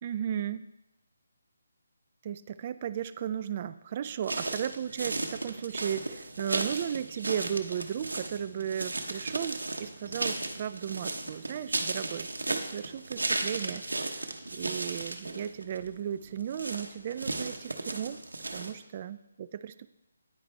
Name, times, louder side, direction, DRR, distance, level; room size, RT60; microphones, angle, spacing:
voice 1, 0.0-0.6 2.2-18.2 18.5-19.9, right 9 dB, 35° right, 14 dB, 0.4 m, -35 dB
sound 1, 4.2-18.7, right 2 dB, 85° right, 1.0 m, -35 dB
9.7 x 9.5 x 3.3 m, 0.92 s
figure-of-eight pair, 155°, 0 cm